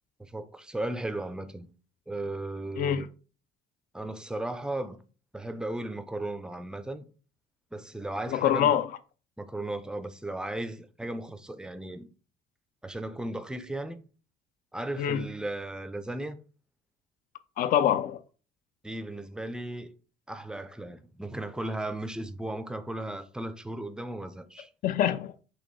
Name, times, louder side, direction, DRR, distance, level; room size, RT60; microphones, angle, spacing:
voice 1, 0.2-1.7 2.1-3.1 3.9-5.0 5.3-7.0 7.7-8.8 9.4-12.1 12.8-14.0 14.7-16.4 18.8-19.9 20.3-24.7, right 1 dB, 5° right, 0.4 m, -36 dB
voice 2, 2.8-3.1 8.3-8.9 15.0-15.3 17.6-18.2 24.8-25.4, left 10 dB, 55° left, 0.4 m, -25 dB
4.1 x 3.1 x 3.2 m
cardioid pair, 110°, 17 cm